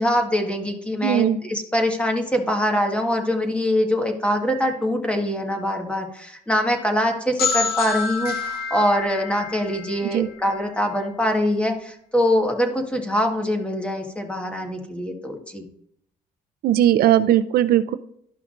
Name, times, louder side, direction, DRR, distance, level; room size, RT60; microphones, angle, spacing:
voice 1, 0.0-15.7, equal, 5° left, 3 dB, 1.5 m, -23 dB
voice 2, 1.0-1.4 10.0-10.3 16.6-18.0, right 12 dB, 65° right, 12 dB, 0.5 m, -18 dB
sound 1, 7.4-11.0, left 5 dB, 65° left, 1.4 m, -28 dB
12.0 x 5.7 x 2.5 m, 0.70 s
cardioid pair, 110°, 17 cm